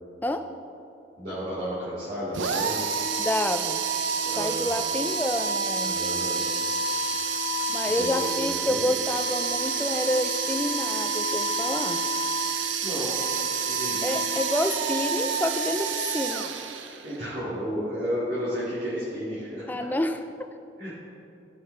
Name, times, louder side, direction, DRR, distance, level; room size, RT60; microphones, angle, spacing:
voice 1, 1.2-2.8 4.2-4.7 5.8-6.4 7.8-8.8 12.8-13.1 13.7-14.1 17.0-19.7 20.8-20.9, equal, 50° right, -12 dB, 2.2 m, -32 dB
sound 1, 2.3-17.2, right 4 dB, 90° right, 0.6 m, -28 dB
voice 2, 3.2-3.8 4.3-6.0 7.7-12.0 14.0-16.5 19.7-20.5, left 1 dB, 10° left, 8 dB, 0.3 m, -28 dB
15.5 x 5.5 x 3.3 m, 2.7 s
head